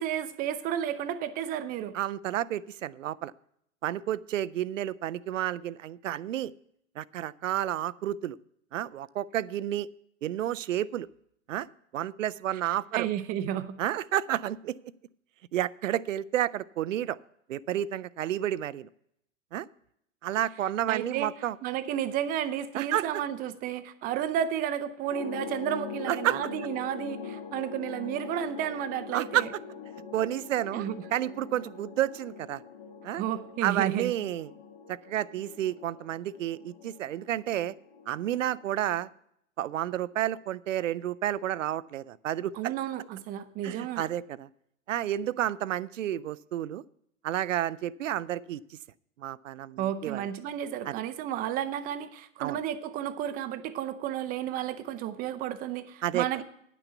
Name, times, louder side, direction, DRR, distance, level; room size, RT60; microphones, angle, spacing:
voice 1, 0.0-2.0 12.6-13.8 20.9-21.3 21.6-29.5 30.7-31.0 33.2-34.1 42.5-44.0 49.8-56.4, right 10 dB, 20° right, 12 dB, 0.5 m, -32 dB
voice 2, 1.9-3.3 3.8-6.5 7.0-8.4 8.7-9.9 10.2-11.1 11.5-11.7 11.9-13.1 13.8-14.8 15.5-17.2 17.5-18.9 19.5-19.7 20.2-21.6 22.7-23.1 26.1-26.4 29.1-29.5 30.1-30.9 31.1-32.6 33.0-33.2 33.6-34.5 34.9-37.7 38.1-39.1 39.6-42.7 43.6-44.5 44.9-46.8 47.2-48.8 49.2-50.3 50.8-51.0 52.4-52.6 56.0-56.3, right 12 dB, 70° right, 19 dB, 0.5 m, -30 dB
sound 1, 25.1-39.1, left 5 dB, 40° left, 1.8 m, -43 dB
10.0 x 6.1 x 6.8 m, 0.74 s
figure-of-eight pair, 105°, 39 cm